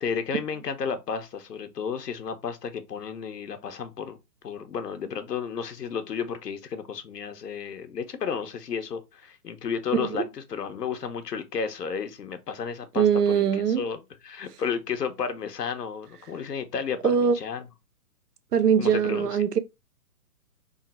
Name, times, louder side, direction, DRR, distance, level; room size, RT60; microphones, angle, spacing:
voice 1, 0.0-4.2 4.4-17.6 18.8-19.3, left 6 dB, 85° left, 1.0 m, -32 dB
voice 2, 9.9-10.2 13.0-13.9 17.0-17.4 18.5-19.6, right 7 dB, 75° right, 0.8 m, -22 dB
3.6 x 2.2 x 4.2 m
hypercardioid pair, 170°, 47 cm